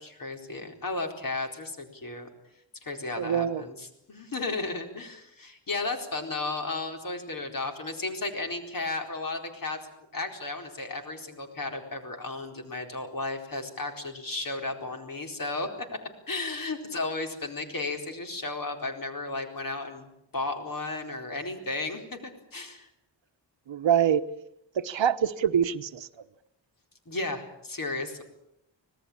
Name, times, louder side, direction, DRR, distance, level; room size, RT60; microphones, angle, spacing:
voice 1, 0.0-2.3 2.8-9.8 10.1-15.7 16.3-22.9 27.1-28.2, left 3 dB, 45° left, 4 dB, 4.3 m, -34 dB
voice 2, 3.2-3.6 23.7-24.2 24.8-26.1, right 9 dB, 75° right, 11 dB, 1.1 m, -25 dB
25.5 x 19.0 x 8.7 m, 0.80 s
wide cardioid pair, 155°, 45 cm